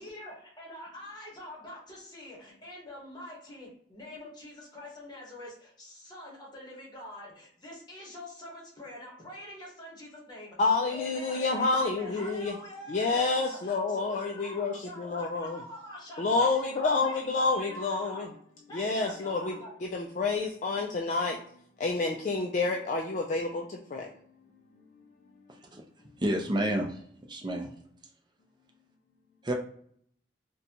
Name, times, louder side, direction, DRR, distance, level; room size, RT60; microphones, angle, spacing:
voice 1, 0.0-16.5 16.7-18.3 18.7-19.8, left 1 dB, 25° left, -3 dB, 1.1 m, -45 dB
voice 2, 10.6-12.6 12.9-15.6 16.2-18.3 18.7-21.4 21.8-24.1, left 3 dB, 45° left, 1 dB, 0.3 m, -29 dB
voice 3, 26.2-27.0 27.3-27.7 29.4-29.5, right 1 dB, 25° right, 2 dB, 0.5 m, -29 dB
4.0 x 2.2 x 2.8 m, 0.64 s
head